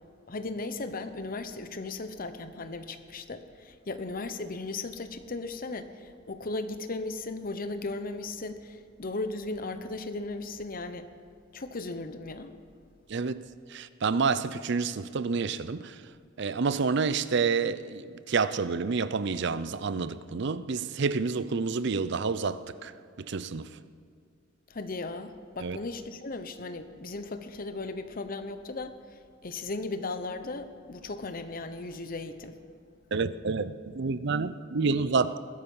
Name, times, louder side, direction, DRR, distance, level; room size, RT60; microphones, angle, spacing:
voice 1, 0.3-11.1 11.5-12.5 24.7-32.6, left 3 dB, 45° left, 0.9 m, -36 dB
voice 2, 13.1-13.4 13.7-16.0 16.4-23.7 25.6-25.8 33.1-35.4, right 4 dB, 60° right, 0.5 m, -29 dB
20.5 x 11.0 x 5.5 m
head